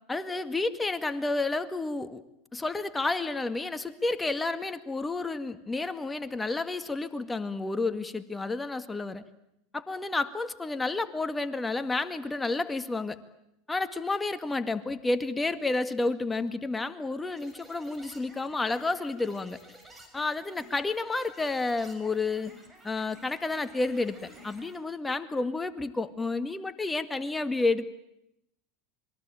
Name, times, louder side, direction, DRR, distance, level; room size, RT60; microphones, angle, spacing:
voice 1, 0.1-2.2 2.5-9.2 9.7-13.2 13.7-19.6 20.1-22.5 22.8-27.9, left 3 dB, 15° left, 10 dB, 2.0 m, -30 dB
sound 1, 17.3-24.8, right 1 dB, 15° right, 7.2 m, -53 dB
27.0 x 22.5 x 8.9 m, 0.82 s
hypercardioid pair, 90°, 0 cm